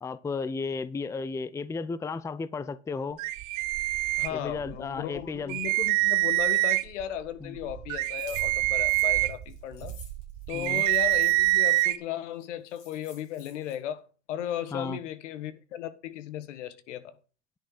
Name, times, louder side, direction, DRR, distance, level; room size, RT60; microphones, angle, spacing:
voice 1, 0.0-3.2 4.3-5.6 7.4-7.6 10.5-10.8 14.7-15.0, left 4 dB, 10° left, 0.5 m, -34 dB
sound 1, 3.2-4.8 5.2-5.3 5.5-7.0 7.6-12.0, right 19 dB, 50° right, 1.1 m, -26 dB
voice 2, 4.2-10.0 10.5-14.0 14.3-17.1, left 10 dB, 80° left, 1.3 m, -36 dB
sound 2, 8.2-11.9 12.4-12.5 12.7-13.7, left 5 dB, 55° left, 5.4 m, -52 dB
10.0 x 6.1 x 6.4 m
supercardioid pair, 110°, 36 cm